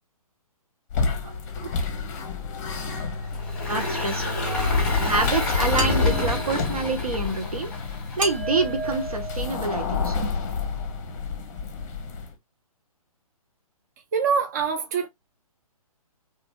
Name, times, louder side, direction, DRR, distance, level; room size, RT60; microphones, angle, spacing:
sound 1, 0.9-12.3, left 5 dB, 30° left, 0.7 m, -29 dB
Engine, 3.3-8.6, left 2 dB, 5° left, 1.2 m, -29 dB
voice 1, 3.7-4.2 5.0-7.7 8.2-10.4, right 3 dB, 70° right, 0.9 m, -27 dB
voice 2, 4.5-4.9 14.1-15.1, right 6 dB, 30° right, 0.4 m, -25 dB
sound 2, 5.8-6.9 8.2-10.1, right 2 dB, 55° right, 1.5 m, -33 dB
2.9 x 2.5 x 2.5 m
figure-of-eight pair, 130°, 19 cm